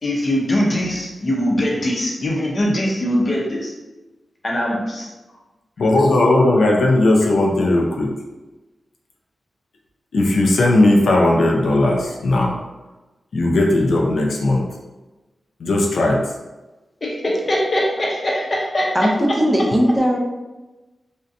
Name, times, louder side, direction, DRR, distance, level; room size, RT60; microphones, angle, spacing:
voice 1, 0.0-3.7 4.4-5.1 17.0-19.4, equal, 40° left, -2 dB, 0.6 m, -22 dB
voice 2, 5.8-8.1 10.1-12.6 13.3-14.6 15.6-16.2, left 2 dB, 80° left, -1 dB, 0.4 m, -17 dB
voice 3, 18.9-20.2, equal, 5° right, -1 dB, 0.4 m, -18 dB
2.6 x 2.1 x 2.5 m, 1.1 s
wide cardioid pair, 85°, 0 cm